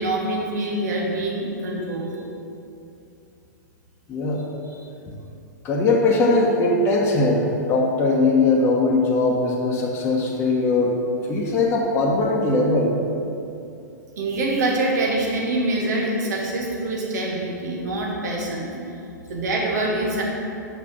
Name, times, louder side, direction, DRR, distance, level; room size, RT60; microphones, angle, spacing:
voice 1, 0.0-2.2 4.6-4.8 14.2-18.8 19.3-20.2, right 2 dB, 60° right, -2 dB, 1.8 m, -25 dB
voice 2, 4.1-4.4 5.6-10.9 11.3-12.9, left 2 dB, 25° left, -3 dB, 1.0 m, -20 dB
6.1 x 5.6 x 5.9 m, 2.7 s
figure-of-eight pair, 110°, 10 cm